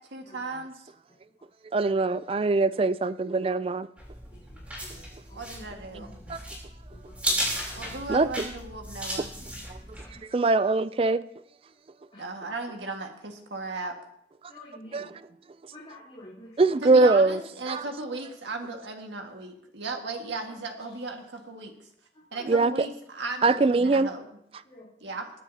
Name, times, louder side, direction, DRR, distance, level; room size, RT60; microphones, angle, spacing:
voice 1, 0.1-0.9 5.3-6.1 7.8-9.3 12.2-14.0 16.8-21.8 22.3-24.3 25.0-25.3, right 3 dB, 80° right, 1.8 m, -36 dB
voice 2, 1.7-3.9 6.3-6.4 8.1-8.4 10.3-11.2 14.9-15.1 16.6-17.4 17.7-17.8 22.5-22.9 23.4-24.1, right 3 dB, 30° right, 0.3 m, -22 dB
sound 1, 4.0-10.2, equal, 10° right, 3.4 m, -35 dB
voice 3, 5.3-5.6 5.9-6.4 6.9-7.8 12.1-12.2 14.5-15.1 15.7-16.5 22.3-22.5 24.7-24.9, left 1 dB, 35° left, 3.7 m, -48 dB
20.0 x 10.0 x 2.8 m
head